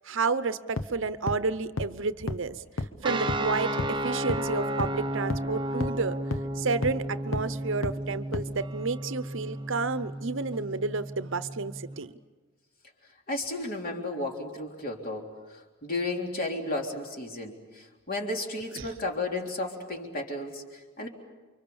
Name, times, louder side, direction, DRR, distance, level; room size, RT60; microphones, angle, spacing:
voice 1, 0.0-2.6 3.0-6.2 6.6-12.1 18.7-18.9, right 4 dB, 60° right, 13 dB, 0.8 m, -31 dB
sound 1, 0.8-0.9 1.3-1.4 1.8-1.9 2.3-2.4 2.8-2.9 3.3-3.4 3.8-3.9 4.3-4.4 4.8-4.9 5.3-5.4 5.8-5.9 6.3-6.4 6.8-6.9 7.3-7.4 7.8-7.9 8.3-8.4, left 2 dB, 65° left, 1.2 m, -30 dB
sound 2, 3.0-12.0, right 1 dB, 20° right, 0.8 m, -33 dB
voice 2, 13.3-21.1, left 2 dB, 45° left, 1 dB, 3.6 m, -33 dB
29.0 x 25.0 x 7.1 m, 1.3 s
head